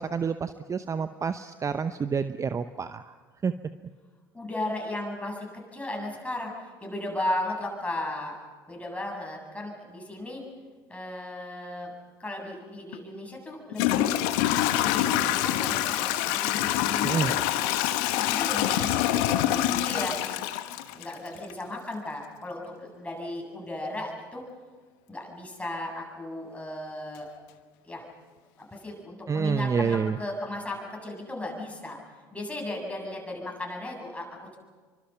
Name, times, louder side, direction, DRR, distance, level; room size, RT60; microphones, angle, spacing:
voice 1, 0.0-3.1 3.4-3.5 17.0-17.3 29.3-30.2, right 6 dB, 25° right, 11 dB, 0.8 m, -28 dB
voice 2, 4.3-5.5 5.7-8.4 8.7-10.4 10.9-11.9 12.2-14.2 14.8-17.3 18.2-20.2 20.9-24.4 25.1-27.3 27.8-28.1 28.6-32.0 32.3-34.6, left 1 dB, 10° left, 0 dB, 7.9 m, -35 dB
Toilet flush / Trickle dribble, 12.9-13.0 13.7-21.5, left 13 dB, 65° left, 1.3 m, -26 dB
28.0 x 24.5 x 5.9 m, 1.5 s
figure-of-eight pair, 65°, 12 cm